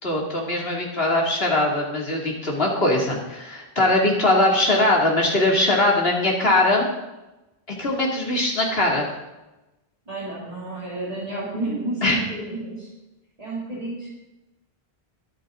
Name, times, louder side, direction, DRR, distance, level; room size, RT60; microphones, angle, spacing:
voice 1, 0.0-6.9 7.8-9.1 12.0-12.2, left 1 dB, 70° left, -1 dB, 3.1 m, -21 dB
voice 2, 10.1-12.9 13.4-14.1, right 2 dB, 35° right, -8 dB, 3.1 m, -31 dB
22.5 x 8.5 x 3.9 m, 1.0 s
omnidirectional pair, 1.1 m